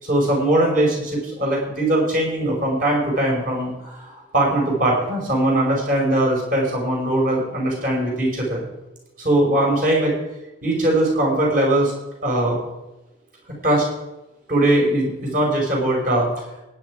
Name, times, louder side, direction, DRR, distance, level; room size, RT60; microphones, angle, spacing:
voice 1, 0.0-8.6 9.2-10.1 10.6-11.9 12.2-12.6 13.6-13.8 14.5-16.3, right 1 dB, 45° right, -1 dB, 5.2 m, -20 dB
17.0 x 9.7 x 4.9 m, 0.94 s
head